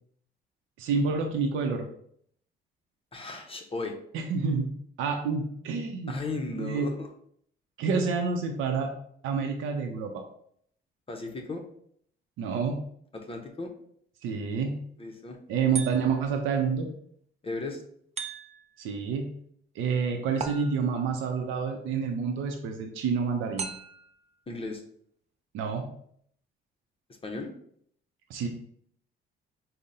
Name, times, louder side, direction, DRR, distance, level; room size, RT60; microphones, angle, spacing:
voice 1, 0.8-1.9 4.1-4.7 5.0-6.2 6.6-6.9 7.8-8.9 9.2-10.2 12.4-12.8 14.2-14.8 15.5-16.9 18.8-19.3 19.8-23.7 25.5-25.9 28.3-28.5, right 5 dB, 90° right, 3 dB, 0.5 m, -28 dB
voice 2, 3.1-3.9 6.1-7.1 11.1-11.6 13.1-13.7 15.0-15.4 17.4-17.8 24.5-24.8 27.2-27.5, left 3 dB, 30° left, 3 dB, 0.6 m, -35 dB
sound 1, 15.7-16.4 18.2-18.8 20.4-21.1 23.6-24.2, right 6 dB, 35° right, 0.5 m, -37 dB
3.7 x 2.0 x 4.0 m, 0.65 s
cardioid pair, 90°, 20 cm